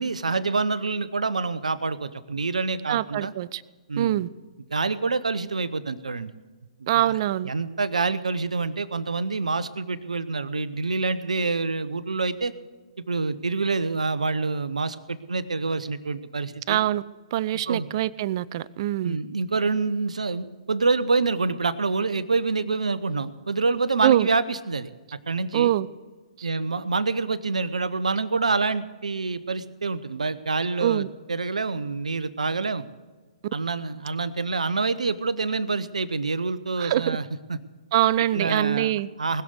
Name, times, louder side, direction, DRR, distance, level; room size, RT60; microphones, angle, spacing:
voice 1, 0.0-3.3 3.9-4.1 4.7-6.3 6.8-7.1 7.4-12.5 13.1-16.8 17.7-17.9 19.0-24.9 25.3-25.7 26.4-32.8 33.5-37.2 37.5-37.6 38.3-39.4, right 3 dB, 80° right, 15 dB, 0.8 m, -27 dB
voice 2, 2.9-3.6 4.0-4.3 6.9-7.5 16.7-17.0 17.3-19.2 24.0-24.3 25.5-25.9 26.4-26.5 30.8-31.1 36.8-37.2 37.9-39.1, right 13 dB, 45° right, 20 dB, 0.5 m, -23 dB
20.0 x 6.9 x 8.0 m, 1.3 s
figure-of-eight pair, 125°, 4 cm